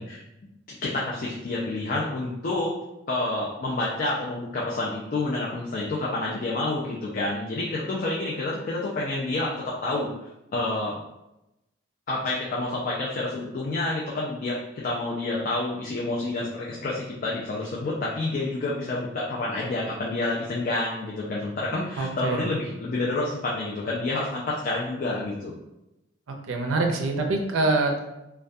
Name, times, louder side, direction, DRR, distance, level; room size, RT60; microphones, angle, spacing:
voice 1, 0.7-2.8 3.1-10.1 10.5-11.0 12.1-25.6, left 2 dB, 45° left, -4 dB, 0.3 m, -28 dB
voice 2, 22.0-22.4 26.5-28.0, right 2 dB, 85° right, 2 dB, 0.4 m, -24 dB
2.5 x 2.2 x 2.2 m, 0.91 s
head